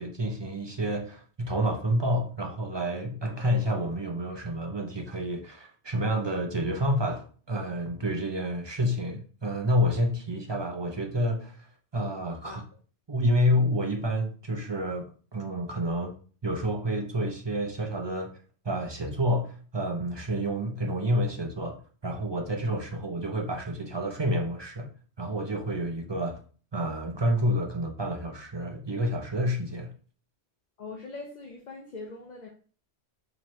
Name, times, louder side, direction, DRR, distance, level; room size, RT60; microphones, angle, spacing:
voice 1, 0.0-11.7 11.9-12.6 13.1-16.1 16.4-18.3 18.6-21.8 22.0-24.9 25.2-26.4 26.7-29.9, equal, 45° right, 0.3 m, -29 dB
voice 2, 30.8-32.5, left 3 dB, 45° left, 0.7 m, -41 dB
4.4 x 3.0 x 3.0 m
omnidirectional pair, 1.2 m